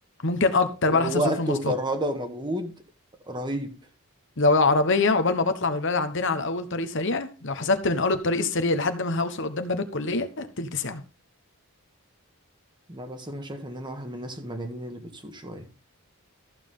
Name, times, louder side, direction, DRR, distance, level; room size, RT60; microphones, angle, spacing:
voice 1, 0.2-1.8 4.4-11.0, left 3 dB, 55° left, 1.1 m, -24 dB
voice 2, 0.9-2.7 3.3-3.8 7.6-7.7 12.9-15.7, right 1 dB, 20° right, 1.5 m, -31 dB
14.0 x 7.3 x 3.8 m
head